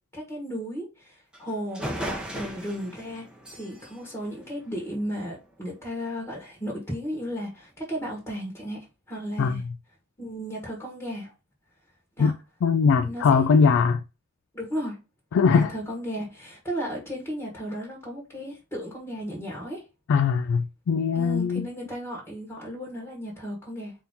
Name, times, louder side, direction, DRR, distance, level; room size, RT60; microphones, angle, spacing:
voice 1, 0.1-1.9 2.3-3.2 3.6-9.6 10.2-11.3 12.2-12.3 13.0-13.5 14.5-15.0 15.5-19.8 21.1-23.9, equal, 15° left, 1.3 m, -34 dB
sound 1, 1.3-1.4 1.7-5.2, equal, 5° right, 0.8 m, -37 dB
voice 2, 12.6-14.0 15.3-15.7 20.1-21.7, left 5 dB, 55° left, 0.3 m, -21 dB
4.3 x 2.7 x 3.6 m
head